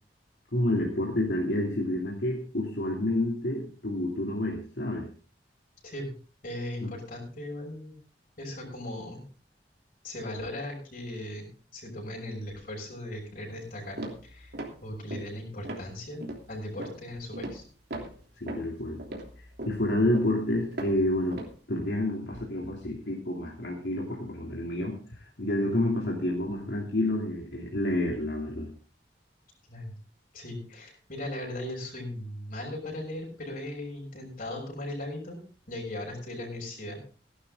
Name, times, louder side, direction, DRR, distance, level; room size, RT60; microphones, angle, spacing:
voice 1, 0.5-5.1 6.8-6.9 18.4-19.0 19.6-21.4 21.7-25.0 25.4-28.7, left 1 dB, 70° left, -2 dB, 2.9 m, -29 dB
voice 2, 5.8-6.1 6.4-7.9 8.4-9.2 10.0-11.5 11.7-14.5 14.8-17.6 29.7-29.9 30.3-35.4 35.7-37.0, left 1 dB, 55° left, -1 dB, 6.3 m, -38 dB
sound 1, 13.5-13.7 14.0-14.8 15.1-15.3 15.6-15.9 16.2-16.5 16.8-17.0 17.3-17.6 17.9-21.0 21.3-21.5, right 1 dB, 65° right, 3.1 m, -38 dB
16.0 x 11.5 x 3.8 m, 0.40 s
head